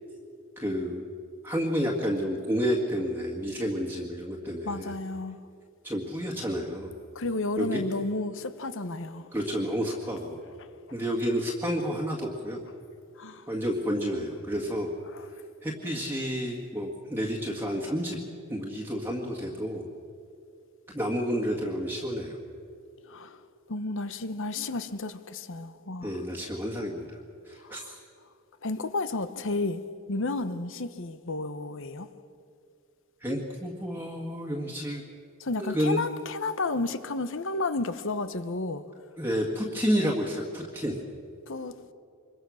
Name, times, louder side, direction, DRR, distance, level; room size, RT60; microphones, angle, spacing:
voice 1, 0.6-1.0 1.4-4.9 5.8-6.9 7.6-7.8 9.3-10.4 10.9-12.6 13.5-14.9 15.6-18.2 18.5-19.8 20.9-22.4 26.0-27.2 27.5-28.0 33.2-35.0 35.6-36.0 39.2-41.0, equal, 10° right, 1.9 m, -30 dB
voice 2, 4.6-5.4 7.1-9.3 10.6-11.0 13.2-13.5 15.1-15.3 23.0-23.4 23.7-26.2 27.6-28.0 28.6-29.8 30.1-32.1 35.4-38.8 41.5-41.7, left 2 dB, 60° left, 1.1 m, -32 dB
25.5 x 22.5 x 6.4 m
head